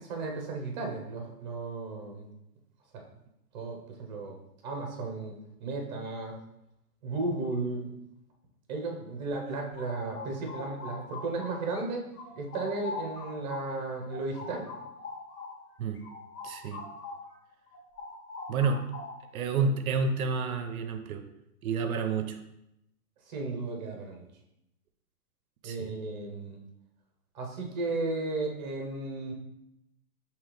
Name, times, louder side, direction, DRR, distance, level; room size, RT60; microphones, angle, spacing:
voice 1, 0.0-2.3 2.9-3.0 3.5-4.4 4.6-6.4 7.0-7.9 8.7-12.1 12.4-14.7 23.3-24.3 25.6-26.6 27.3-29.3, right 3 dB, 30° right, 2 dB, 0.7 m, -34 dB
sound 1, 9.5-11.8 12.1-17.4 17.7-19.4, left 3 dB, 80° left, 1.2 m, -43 dB
voice 2, 16.4-16.8 18.5-18.8 19.3-21.2 21.6-22.4 25.6-25.9, right 4 dB, 65° right, 7 dB, 0.6 m, -29 dB
5.5 x 2.9 x 3.2 m, 0.83 s
hypercardioid pair, 170°, 46 cm